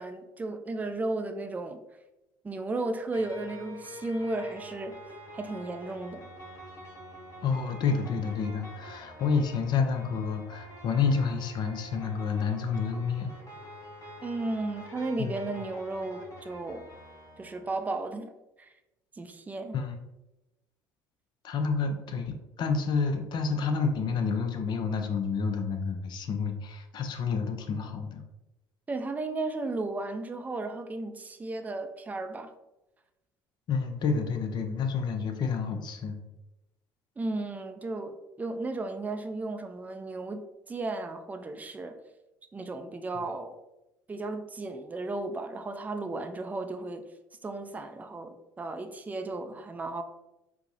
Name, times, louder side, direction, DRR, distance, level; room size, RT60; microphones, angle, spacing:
voice 1, 0.0-1.8 2.4-5.0 5.3-6.3 14.2-16.9 17.4-18.3 18.6-18.7 19.2-19.8 28.9-32.5 37.2-42.0 42.5-43.6 44.1-47.1 47.4-50.0, right 2 dB, 15° right, 7 dB, 0.4 m, -34 dB
sound 1, 3.1-17.9, left 1 dB, 35° left, 1.2 m, -46 dB
voice 2, 7.4-13.3 15.2-15.5 19.7-19.9 21.4-28.2 33.7-36.2, left 5 dB, 50° left, 6 dB, 0.5 m, -29 dB
4.4 x 2.0 x 2.7 m, 0.97 s
hypercardioid pair, 60°, 10 cm